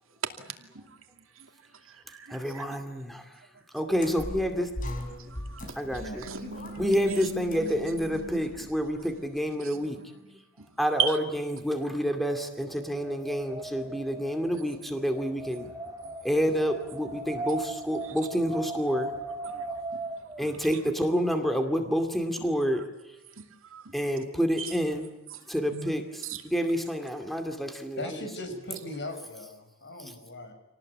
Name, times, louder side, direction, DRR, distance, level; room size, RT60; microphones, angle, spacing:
voice 1, 0.4-1.0 1.4-1.5 1.8-2.8 5.2-5.7 6.2-8.7 9.2-10.7 11.0-11.2 16.2-16.3 18.0-18.1 18.5-18.6 19.4-19.8 20.4-20.7 22.7-22.8 23.4-23.9 24.6-24.8 25.3-25.9 26.2-26.4, right 6 dB, 70° right, 2.6 m, -38 dB
voice 2, 2.3-3.2 3.7-4.7 5.8-6.3 6.8-10.0 10.8-11.2 11.5-15.7 16.2-19.1 20.4-22.8 23.9-25.1 25.5-26.0 26.4-28.1 30.0-30.1, equal, ahead, 2.4 m, -28 dB
sound 1, 4.0-9.2, left 1 dB, 40° left, 4.7 m, -40 dB
Wind, 12.5-20.4, right 2 dB, 15° right, 3.2 m, -38 dB
voice 3, 28.0-30.5, left 1 dB, 55° left, 6.3 m, -38 dB
27.0 x 18.5 x 8.7 m
head